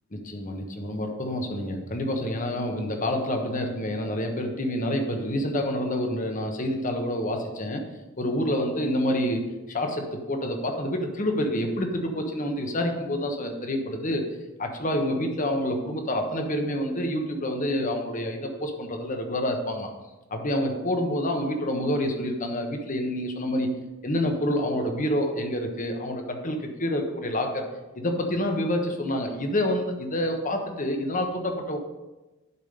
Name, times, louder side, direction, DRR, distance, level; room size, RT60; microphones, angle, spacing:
voice 1, 0.1-7.8 8.2-9.4 9.7-19.9 20.3-27.7 28.0-31.8, left 1 dB, 40° left, 4 dB, 1.2 m, -28 dB
11.0 x 5.1 x 5.2 m, 1.1 s
head